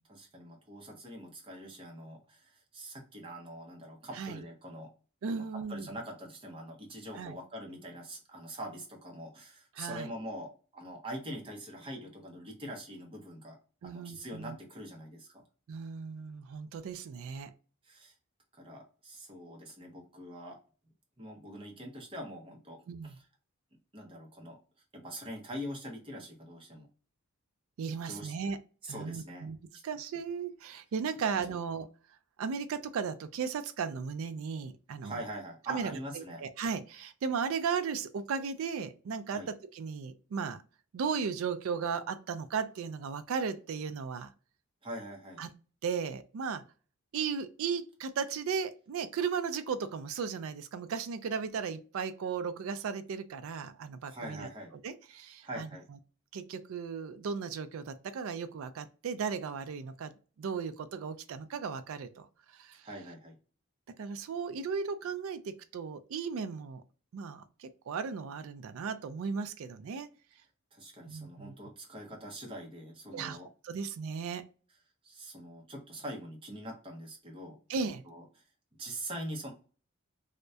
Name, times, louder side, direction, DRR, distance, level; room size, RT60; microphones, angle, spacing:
voice 1, 0.1-4.9 5.3-13.6 13.8-15.4 17.8-18.2 18.6-20.6 21.2-23.3 23.9-24.6 24.9-26.9 28.0-28.3 28.8-29.5 31.5-31.6 35.0-36.4 39.3-39.5 44.8-45.4 54.1-54.7 55.4-55.8 62.8-63.4 70.7-73.5 75.0-77.6 78.0-78.2 78.8-79.5, equal, 25° right, 1 dB, 0.6 m, -43 dB
voice 2, 5.2-5.9 7.2-7.4 9.8-10.1 13.8-14.6 15.7-17.5 22.9-23.1 27.8-28.6 28.9-29.6 29.8-31.9 32.4-35.1 35.7-39.4 39.7-40.6 40.9-44.3 45.4-45.5 45.8-46.6 47.1-54.5 54.8-55.7 56.3-62.3 62.5-62.8 64.0-66.8 67.1-70.1 71.1-71.5 73.1-73.4 73.6-74.4 77.7-78.0, right 6 dB, 70° right, 11 dB, 0.3 m, -36 dB
2.2 x 2.1 x 2.6 m, 0.37 s
head